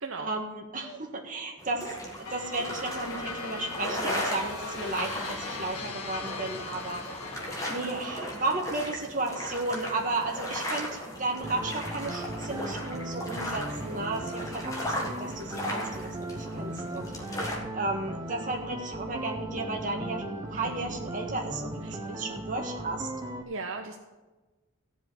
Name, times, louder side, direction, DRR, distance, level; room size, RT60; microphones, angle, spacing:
voice 1, 0.2-7.0 7.7-17.5 17.7-23.1, right 2 dB, 35° right, 1 dB, 1.6 m, -34 dB
sound 1, 1.6-17.6, left 1 dB, 15° left, 1.5 m, -37 dB
sound 2, 2.2-8.5, left 3 dB, 80° left, 1.7 m, -40 dB
sound 3, 11.4-23.4, right 1 dB, 15° right, 0.7 m, -37 dB
voice 2, 23.5-24.0, right 3 dB, 60° right, 3 dB, 0.7 m, -37 dB
14.5 x 5.1 x 8.8 m, 1.2 s
head